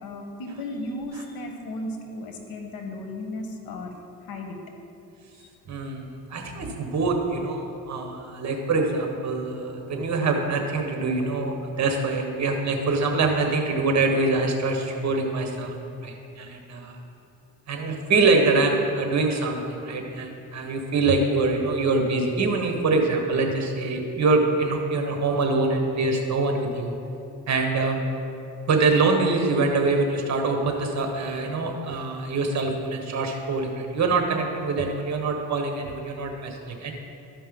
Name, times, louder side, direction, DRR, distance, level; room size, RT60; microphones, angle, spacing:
voice 1, 0.0-3.9 4.3-4.6 5.4-5.5, left 1 dB, 75° left, 3 dB, 1.3 m, -35 dB
voice 2, 5.7-15.7 16.0-17.0 17.7-26.9 27.5-28.0 28.7-36.9, right 3 dB, 50° right, 3 dB, 1.4 m, -24 dB
13.0 x 5.4 x 3.9 m, 2.7 s
cardioid pair, 95°, 37 cm